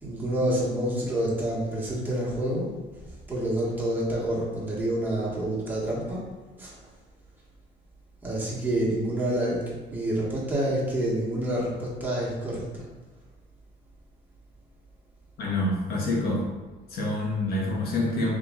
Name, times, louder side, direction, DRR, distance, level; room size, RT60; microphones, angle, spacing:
voice 1, 0.0-2.7 3.3-6.3 6.6-6.7 8.2-12.8, right 1 dB, 10° right, -6 dB, 1.3 m, -28 dB
voice 2, 15.4-16.4 16.9-18.4, left 2 dB, 65° left, -3 dB, 1.1 m, -27 dB
3.7 x 3.1 x 3.7 m, 1.2 s
cardioid pair, 110°, 17 cm